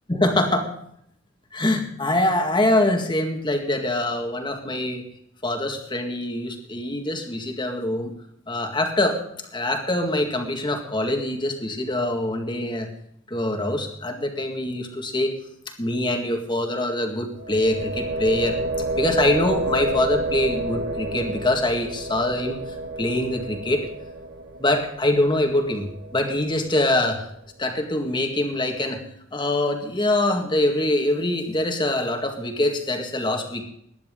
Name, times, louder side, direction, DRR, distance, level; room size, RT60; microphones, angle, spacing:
voice 1, 0.1-0.7 1.5-5.0 5.4-8.1 8.5-9.2 9.5-12.9 13.3-15.4 15.8-18.6 19.0-23.9 24.6-27.3 27.6-29.0 29.3-33.6, left 1 dB, 25° left, 4 dB, 1.9 m, -24 dB
sound 1, 17.4-27.2, right 2 dB, 85° right, 2.8 m, -30 dB
20.5 x 10.5 x 3.8 m, 0.73 s
head